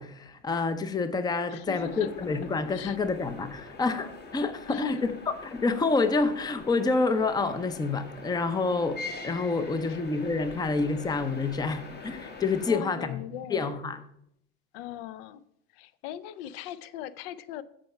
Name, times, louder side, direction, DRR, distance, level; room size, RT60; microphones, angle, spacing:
voice 1, 0.0-5.0 5.4-13.2 13.5-14.0, left 3 dB, 10° left, 11 dB, 0.6 m, -28 dB
voice 2, 1.5-2.1 2.7-3.0 4.7-5.1 12.7-13.7 14.7-15.4 15.7-17.6, left 11 dB, 60° left, 17 dB, 0.6 m, -39 dB
sound 1, 1.8-12.7, left 3 dB, 30° left, 1.3 m, -44 dB
7.6 x 4.7 x 5.6 m, 0.73 s
hypercardioid pair, 85°, 33 cm